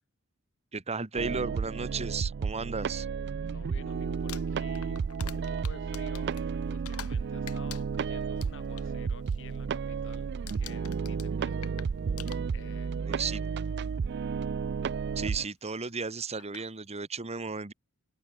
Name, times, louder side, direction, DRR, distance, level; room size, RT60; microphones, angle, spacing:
voice 1, 0.7-3.1 13.0-13.4 15.1-17.7, right 4 dB, 30° right, 1.3 m, -34 dB
sound 1, 1.2-15.4, right 5 dB, 50° right, 0.4 m, -32 dB
voice 2, 3.5-6.4 6.6-10.3 10.6-11.8 12.5-13.2, left 3 dB, 60° left, 7.2 m, -51 dB
Crumpling crinkling, 4.1-7.2 7.5-8.9 9.2-9.6 9.8-10.2 10.5-12.9 13.8-13.9 15.9-16.0 16.4-16.7, left 9 dB, 85° left, 6.3 m, -46 dB
open air
head